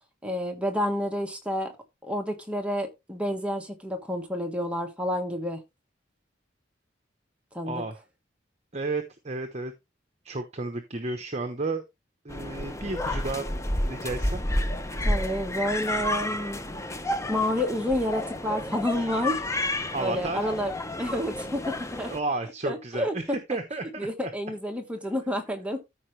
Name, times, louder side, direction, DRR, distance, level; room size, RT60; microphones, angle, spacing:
voice 1, 0.2-1.7 2.0-5.6 7.5-7.8 15.0-16.9 17.3-19.4 20.0-20.7 21.0-22.1 22.6-23.4 24.0-25.8, left 1 dB, 5° right, 1.4 m, -29 dB
voice 2, 7.7-8.0 8.7-9.7 10.2-11.8 12.2-13.5 13.8-14.4 19.9-20.5 22.0-24.1, right 3 dB, 35° right, 1.0 m, -32 dB
sound 1, 12.3-22.2, left 1 dB, 15° left, 0.7 m, -30 dB
14.0 x 5.0 x 3.2 m
head